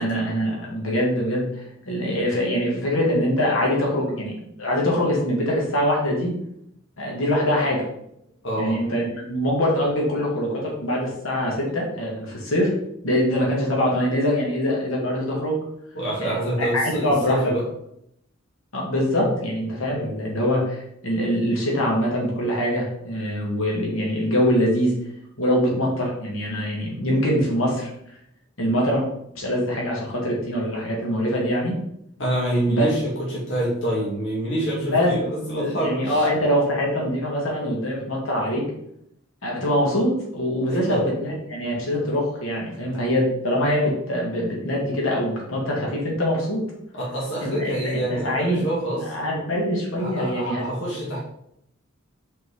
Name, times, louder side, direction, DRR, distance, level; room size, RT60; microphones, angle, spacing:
voice 1, 0.0-6.3 7.0-7.8 8.6-12.7 13.0-15.6 16.2-17.6 18.7-24.9 25.4-27.9 28.6-29.0 29.3-31.7 32.7-32.9 34.9-35.2 35.6-38.6 39.4-46.6 47.4-48.6 49.1-50.7, equal, 85° left, -3 dB, 2.2 m, -23 dB
voice 2, 8.4-8.8 15.9-17.6 19.2-19.3 32.2-36.2 40.7-41.0 46.9-49.1 50.0-51.2, right 1 dB, 65° left, -5 dB, 2.0 m, -26 dB
5.4 x 4.6 x 4.8 m, 0.75 s
head